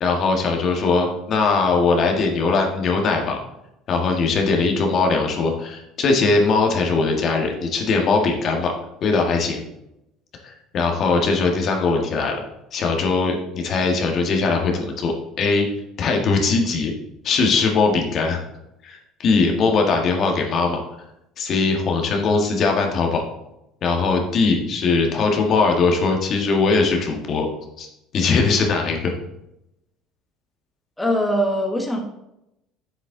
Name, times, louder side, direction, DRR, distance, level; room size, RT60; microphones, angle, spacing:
voice 1, 0.0-3.4 3.9-8.7 9.0-9.6 10.4-12.4 12.7-15.7 16.0-16.9 17.2-18.4 18.8-20.8 21.4-23.2 23.8-27.5 27.8-27.9 28.1-29.1, left 4 dB, 50° left, 2 dB, 1.7 m, -20 dB
voice 2, 31.0-32.0, equal, 10° left, 1 dB, 1.3 m, -21 dB
7.4 x 7.1 x 3.8 m, 0.86 s
supercardioid pair, 80°, 0 cm